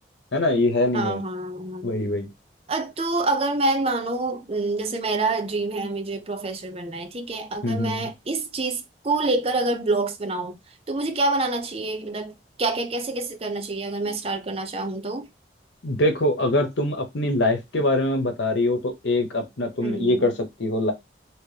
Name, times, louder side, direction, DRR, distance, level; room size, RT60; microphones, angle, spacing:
voice 1, 0.3-1.2 1.8-2.3 7.6-8.1 15.8-20.3 20.6-20.9, left 1 dB, 80° left, 1.0 m, -23 dB
voice 2, 0.9-1.9 2.7-10.6 10.9-12.3 12.6-15.3 19.8-20.4, right 2 dB, 35° right, 0.6 m, -27 dB
3.0 x 3.0 x 3.2 m
head